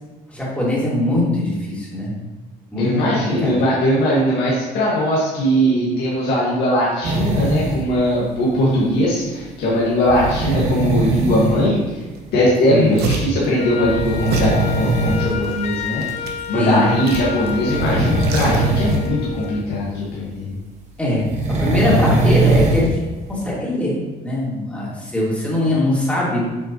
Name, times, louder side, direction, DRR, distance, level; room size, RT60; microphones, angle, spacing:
voice 1, 0.3-2.1 2.7-3.6 12.7-12.9 16.5-16.8 21.0-23.0 23.3-24.0 24.2-26.5, left 1 dB, 5° left, -6 dB, 2.3 m, -21 dB
voice 2, 2.8-12.0 12.3-16.0 16.5-20.6, equal, 75° left, -7 dB, 1.8 m, -19 dB
sound 1, 7.0-7.8 10.1-11.5 12.9-13.0 13.8-15.3 16.0-16.1 17.4-19.1 19.4-19.6 21.2-22.9 23.4-23.5, right 2 dB, 45° right, 1.2 m, -20 dB
sound 2, 12.2-12.3 12.5-13.5 14.3-14.6 15.3-16.5 17.1-17.6 17.9-19.1 19.4-19.5, right 3 dB, 70° right, 1.1 m, -27 dB
Wind instrument woodwind instrument, 13.6-19.7, left 7 dB, 40° left, 0.6 m, -29 dB
7.8 x 5.6 x 3.0 m, 1.2 s
cardioid pair, 110°, 17 cm